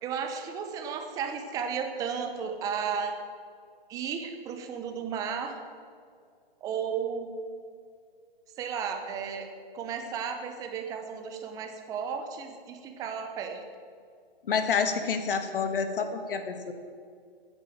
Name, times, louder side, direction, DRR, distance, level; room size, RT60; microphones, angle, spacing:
voice 1, 0.0-3.2 3.9-5.6 6.6-7.3 8.6-9.5 9.7-13.6, right 6 dB, 10° right, 6 dB, 0.8 m, -34 dB
voice 2, 14.4-16.7, left 5 dB, 65° left, 8 dB, 1.7 m, -28 dB
13.0 x 9.8 x 7.7 m, 2.2 s
hypercardioid pair, 160°, 30 cm